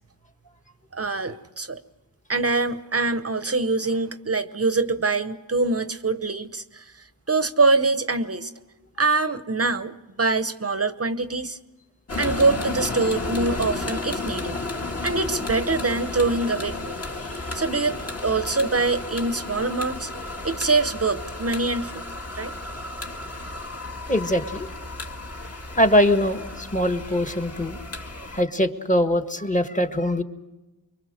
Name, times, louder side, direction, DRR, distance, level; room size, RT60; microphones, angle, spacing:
voice 1, 0.9-1.8 2.3-6.9 7.3-8.5 9.0-11.6 12.2-14.6 15.0-17.0 17.5-20.1 20.4-21.9 22.3-22.5, right 3 dB, 35° right, 11 dB, 0.9 m, -24 dB
sound 1, 12.1-28.4, left 2 dB, 35° left, 2.0 m, -33 dB
voice 2, 24.1-24.7 25.8-27.8 28.3-30.2, left 1 dB, 15° left, 8 dB, 1.5 m, -22 dB
25.0 x 23.5 x 6.5 m, 1.1 s
wide cardioid pair, 80°, 44 cm